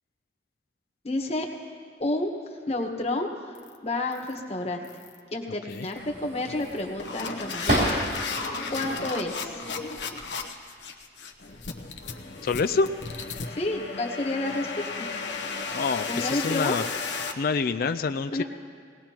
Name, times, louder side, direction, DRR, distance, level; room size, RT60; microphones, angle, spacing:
voice 1, 1.0-1.5 2.0-3.6 3.8-4.8 5.3-7.9 8.7-9.6 13.5-14.7 15.0-15.1 16.1-16.8 18.3-18.4, left 2 dB, 35° left, 1 dB, 1.4 m, -30 dB
sound 1, 3.6-3.8 4.1-4.4 4.8-5.2 5.7-6.0 6.6-17.3, left 4 dB, 80° left, 1.0 m, -34 dB
sound 2, 5.9-8.4 8.9-9.7 10.6-11.0 11.3-12.1, right 1 dB, 65° right, 3.5 m, -31 dB
voice 2, 12.4-12.9 15.7-16.9 17.4-18.4, left 4 dB, 55° left, 10 dB, 0.4 m, -26 dB
20.5 x 18.0 x 3.0 m, 2.1 s
head